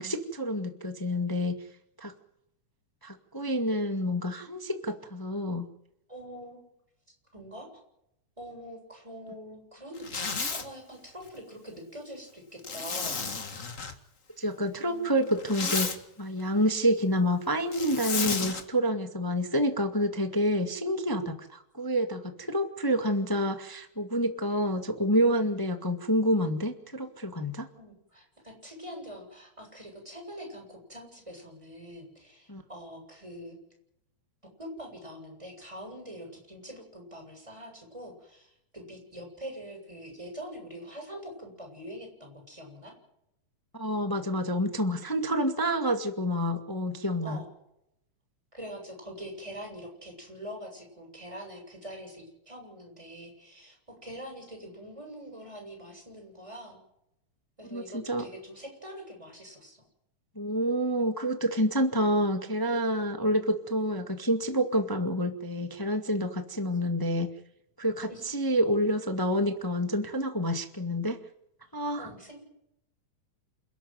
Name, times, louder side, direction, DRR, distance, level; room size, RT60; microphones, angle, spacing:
voice 1, 0.0-1.6 2.0-2.1 3.0-5.7 14.4-15.9 16.2-27.7 32.5-32.6 43.7-47.4 57.7-58.2 60.3-67.3 67.8-71.2 71.7-72.1, equal, 10° left, 6 dB, 1.0 m, -28 dB
voice 2, 6.1-6.6 7.3-7.8 8.4-13.4 14.7-15.7 22.4-22.5 27.8-33.6 34.6-42.9 47.2-47.5 48.5-56.8 57.6-59.9 68.1-68.2 72.0-72.4, equal, 10° right, 3 dB, 7.6 m, -44 dB
Zipper (clothing), 10.0-10.7 12.6-13.9 15.3-16.0 17.7-18.6, left 4 dB, 30° left, 1.7 m, -32 dB
28.5 x 12.5 x 9.3 m, 0.79 s
omnidirectional pair, 3.8 m